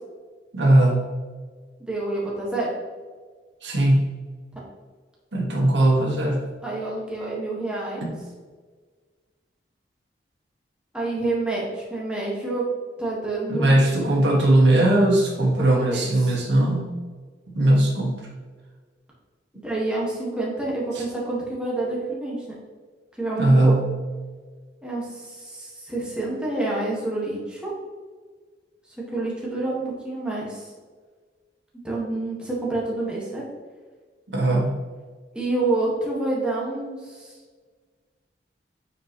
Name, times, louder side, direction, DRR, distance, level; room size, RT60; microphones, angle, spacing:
voice 1, 0.5-1.0 3.6-4.1 5.3-6.5 8.0-8.1 13.5-16.9 17.5-18.2 20.9-21.0 23.4-23.9 34.3-34.7, right 1 dB, 80° right, -1 dB, 1.6 m, -19 dB
voice 2, 1.8-2.7 4.5-4.6 6.6-8.1 10.9-12.6 13.0-13.9 15.6-16.3 19.6-22.6 23.2-23.8 24.8-27.7 29.1-30.6 31.8-33.4 35.3-37.3, right 2 dB, 5° right, -5 dB, 1.6 m, -28 dB
8.8 x 4.8 x 3.0 m, 1.5 s
head